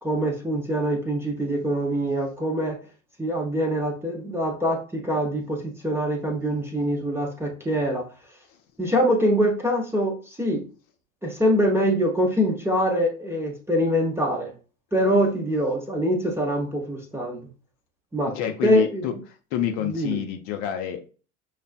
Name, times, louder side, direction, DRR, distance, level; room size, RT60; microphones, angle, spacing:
voice 1, 0.0-2.8 3.2-8.1 8.8-10.7 11.2-14.5 14.9-17.5 18.1-18.3 18.6-19.1 19.8-20.2, equal, 5° right, 1 dB, 0.8 m, -24 dB
voice 2, 18.3-19.1 19.5-21.1, left 10 dB, 45° left, 4 dB, 0.7 m, -27 dB
6.0 x 2.4 x 2.2 m, 0.35 s
figure-of-eight pair, 75°, 43 cm